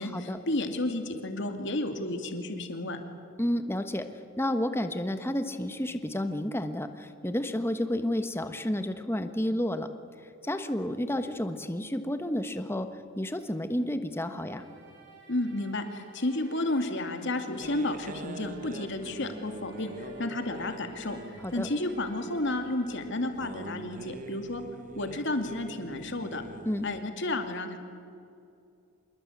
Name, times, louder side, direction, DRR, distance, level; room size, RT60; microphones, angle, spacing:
voice 1, 0.0-3.0 15.3-21.2 21.5-24.6 25.0-26.4 26.8-27.8, left 2 dB, 60° left, 6 dB, 2.5 m, -32 dB
voice 2, 3.4-4.1 4.4-9.9 10.4-12.9 13.2-14.7 21.4-21.7 26.6-26.9, left 1 dB, 10° left, 8 dB, 1.2 m, -31 dB
sound 1, 14.2-24.2, right 3 dB, 60° right, 7.5 m, -54 dB
sound 2, 17.6-27.0, right 2 dB, 40° right, 1.0 m, -45 dB
26.5 x 21.5 x 8.6 m, 2.6 s
head